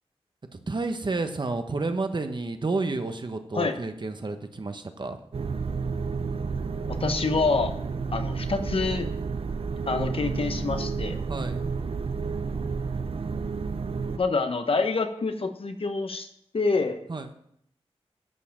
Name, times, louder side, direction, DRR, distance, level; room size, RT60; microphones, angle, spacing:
voice 1, 0.5-5.2 11.3-11.7 17.1-17.4, right 3 dB, 45° right, 7 dB, 1.1 m, -30 dB
sound 1, 5.3-14.2, right 4 dB, 60° right, 0.7 m, -31 dB
voice 2, 6.9-7.7 8.1-9.1 9.9-11.2 14.2-16.3 16.5-17.0, left 4 dB, 60° left, 7 dB, 1.2 m, -26 dB
11.0 x 5.7 x 7.3 m, 0.70 s
wide cardioid pair, 75°, 11 cm